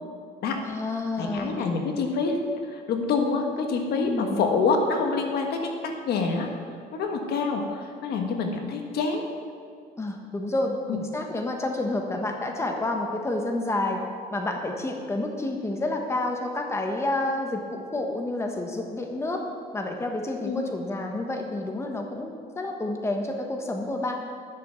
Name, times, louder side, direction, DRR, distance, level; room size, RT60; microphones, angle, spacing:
voice 1, 0.6-1.7 3.9-4.4 10.0-14.0 14.3-19.4 19.7-24.2, left 2 dB, 15° left, 2 dB, 1.3 m, -29 dB
voice 2, 1.2-6.5 6.9-9.2 10.9-11.0 20.4-20.6, left 4 dB, 70° left, 3 dB, 1.5 m, -26 dB
11.5 x 6.9 x 7.0 m, 2.1 s
cardioid pair, 110°, 17 cm